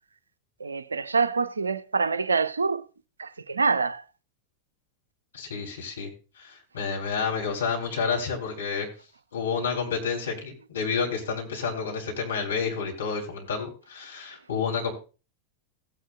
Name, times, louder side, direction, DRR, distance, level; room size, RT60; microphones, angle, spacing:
voice 1, 0.6-2.8 3.2-4.0, right 4 dB, 75° right, 0.5 m, -26 dB
voice 2, 5.3-6.1 6.4-8.9 9.3-14.9, left 5 dB, 70° left, 3.4 m, -30 dB
16.0 x 9.9 x 2.4 m
figure-of-eight pair, 90°, 0 cm